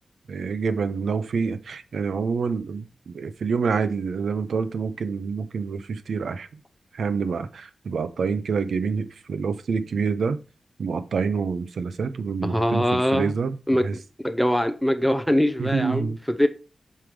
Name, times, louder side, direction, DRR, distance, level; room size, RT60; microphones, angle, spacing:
voice 1, 0.3-6.5 6.9-10.4 10.8-14.0 15.6-16.2, right 5 dB, 90° right, 0.7 m, -27 dB
voice 2, 12.4-13.3 13.7-13.8 14.2-16.5, equal, ahead, 0.5 m, -22 dB
5.7 x 4.7 x 5.0 m
wide cardioid pair, 155°, 0 cm